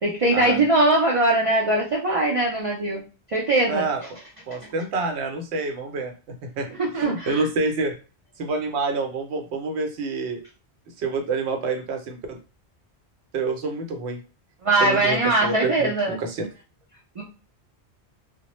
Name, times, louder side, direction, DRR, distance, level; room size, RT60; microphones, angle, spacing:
voice 1, 0.0-3.0 3.3-3.8 4.6-4.7 6.8-7.4 14.6-16.2 17.2-17.3, right 2 dB, 50° right, -3 dB, 0.4 m, -21 dB
voice 2, 3.7-4.0 4.5-6.7 6.9-8.0 8.4-10.4 11.0-12.4 13.3-14.2 14.8-16.5, right 3 dB, 75° right, 4 dB, 0.9 m, -27 dB
2.0 x 2.0 x 2.9 m, 0.34 s
omnidirectional pair, 1.1 m